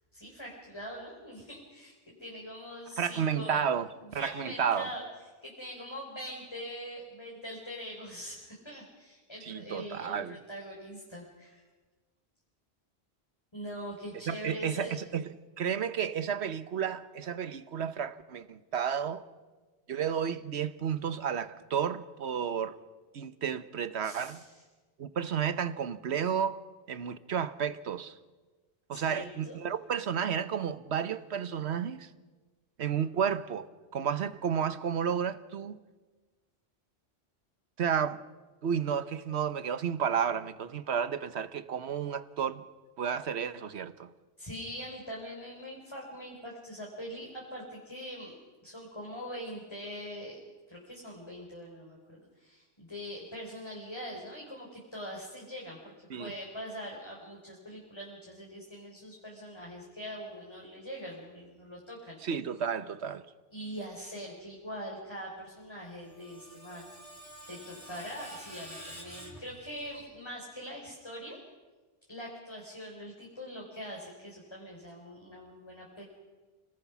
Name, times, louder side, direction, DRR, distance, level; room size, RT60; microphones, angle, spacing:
voice 1, 0.1-3.6 4.0-5.0 5.4-11.6 13.5-15.0 24.0-24.6 28.9-29.6 44.4-48.4 48.6-50.4 50.7-62.2 63.5-66.9 67.5-71.4 72.1-76.0, equal, 25° left, 4.3 m, -43 dB
voice 2, 3.0-3.9 4.1-4.9 9.5-10.4 14.3-15.3 15.6-19.2 19.9-22.7 23.1-24.4 25.0-26.6 26.9-28.2 28.9-32.1 32.8-35.8 37.8-38.2 38.6-42.6 43.0-44.1 56.1-56.3 62.2-63.2, right 7 dB, 85° right, 1.2 m, -32 dB
Screech, 65.8-70.1, equal, 15° right, 4.1 m, -49 dB
29.5 x 20.0 x 6.1 m
omnidirectional pair, 1.1 m